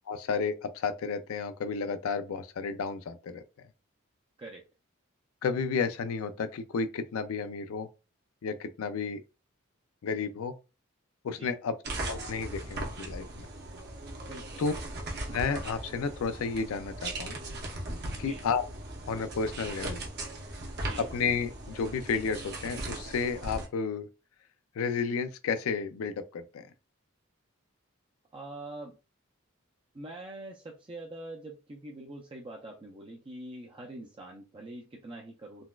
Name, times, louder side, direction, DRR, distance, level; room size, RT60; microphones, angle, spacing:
voice 1, 0.1-3.4 5.4-7.9 8.4-9.2 10.0-10.5 11.2-11.8 12.1-13.5 14.6-14.7 15.3-17.4 18.2-18.6 19.1-20.0 21.0-24.1 24.8-26.6, left 5 dB, 85° left, 0.4 m, -32 dB
sound 1, 11.8-23.7, right 1 dB, 50° right, 0.8 m, -38 dB
voice 2, 14.3-14.6 18.2-18.5 20.8-21.0 28.3-29.0 29.9-35.7, right 1 dB, 25° right, 0.4 m, -44 dB
3.9 x 2.3 x 2.3 m
head